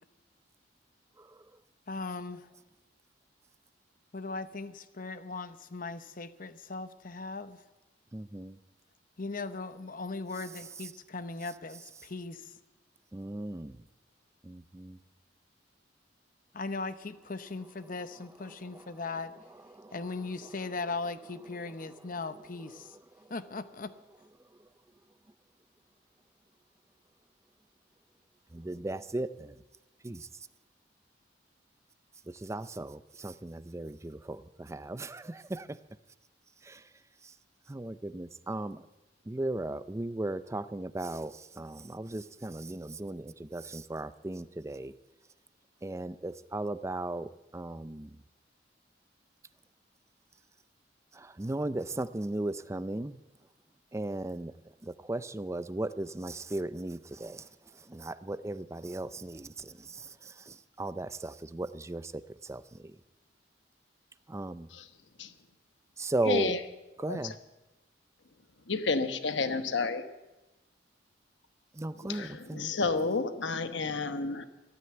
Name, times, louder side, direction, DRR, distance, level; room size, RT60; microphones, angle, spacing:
voice 1, 1.9-2.5 4.1-7.6 9.2-12.5 16.5-19.3 19.9-23.0 23.3-23.9, left 3 dB, 50° left, 12 dB, 0.8 m, -38 dB
voice 2, 8.1-8.6 13.1-13.8 14.4-15.0 19.7-20.0 28.5-29.6 30.0-30.3 32.3-35.8 36.6-36.8 37.7-38.8 39.3-44.9 45.8-48.2 51.1-53.2 53.9-54.5 54.8-57.4 57.9-62.8 64.3-64.7 66.0-66.5 67.0-67.3 71.8-72.7, right 2 dB, 15° right, 14 dB, 0.4 m, -36 dB
voice 3, 66.2-66.6 67.1-67.3 68.7-70.0 72.0-74.4, left 4 dB, 80° left, 9 dB, 1.1 m, -31 dB
14.0 x 13.0 x 7.8 m, 1.1 s
head